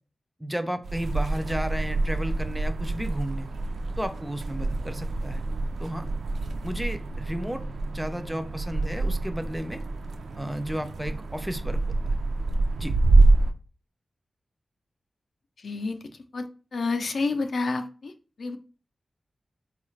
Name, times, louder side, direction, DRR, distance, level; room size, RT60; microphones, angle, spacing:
voice 1, 0.4-3.5 4.0-5.4 5.8-6.1 6.6-7.6 7.9-9.8 10.4-11.8 12.0-12.1 12.8-12.9, equal, 5° right, 8 dB, 0.3 m, -33 dB
sound 1, 0.8-13.5, right 2 dB, 85° right, 0.3 m, -26 dB
voice 2, 15.6-16.0 16.3-16.4 16.7-18.1 18.4-18.6, left 3 dB, 65° left, 7 dB, 0.4 m, -28 dB
3.9 x 2.3 x 3.1 m, 0.37 s
wide cardioid pair, 140°, 0 cm